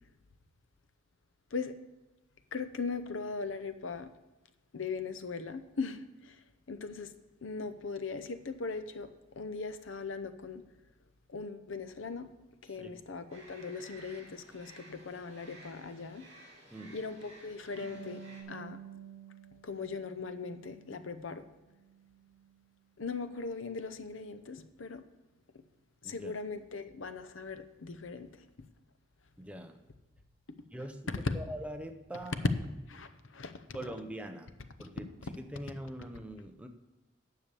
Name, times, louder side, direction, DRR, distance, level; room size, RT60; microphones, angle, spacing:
voice 1, 2.5-4.1 4.7-6.4 6.7-7.1 7.4-10.6 11.3-12.3 12.6-16.2 16.9-18.2 18.5-18.8 19.6-21.5 23.0-25.0 25.5-25.6 26.0-28.3 31.2-31.4 32.9-33.6, left 4 dB, 75° left, 11 dB, 0.7 m, -39 dB
sound 1, 13.3-18.4, right 1 dB, 30° right, 3.3 m, -55 dB
Harp, 17.8-21.1 21.5-22.6, right 5 dB, 55° left, 2.9 m, -50 dB
voice 2, 29.4-29.8 30.7-31.1 31.3-32.5 33.7-36.7, right 1 dB, 5° right, 5 dB, 0.6 m, -43 dB
10.0 x 7.0 x 6.9 m, 1.1 s
head